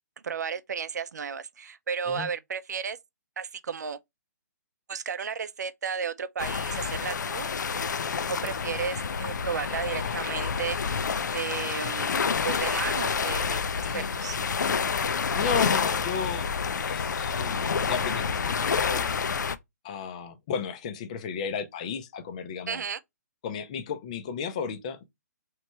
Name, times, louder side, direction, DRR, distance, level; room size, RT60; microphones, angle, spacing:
voice 1, 0.2-3.0 3.4-4.0 4.9-7.5 8.4-14.4 22.7-23.0, right 6 dB, 70° right, 0.6 m, -34 dB
sound 1, 6.4-19.5, left 6 dB, 85° left, 0.5 m, -28 dB
voice 2, 10.0-10.3 13.8-14.1 15.3-19.1 19.8-22.8 23.4-25.0, left 6 dB, 25° left, 0.4 m, -34 dB
3.3 x 3.1 x 4.2 m
hypercardioid pair, 170°, 9 cm